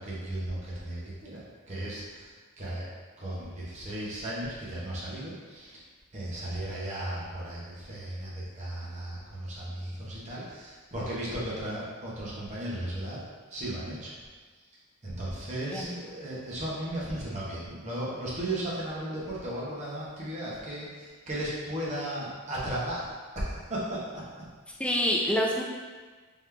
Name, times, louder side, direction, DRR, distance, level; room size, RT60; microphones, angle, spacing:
voice 1, 0.0-1.4 1.7-2.3 2.6-2.9 3.2-5.8 6.1-13.2 13.5-14.1 15.0-24.0, right 1 dB, 30° right, -7 dB, 1.0 m, -35 dB
voice 2, 15.7-16.0 24.7-25.6, equal, 5° left, -2 dB, 0.4 m, -27 dB
3.7 x 3.1 x 3.4 m, 1.4 s
head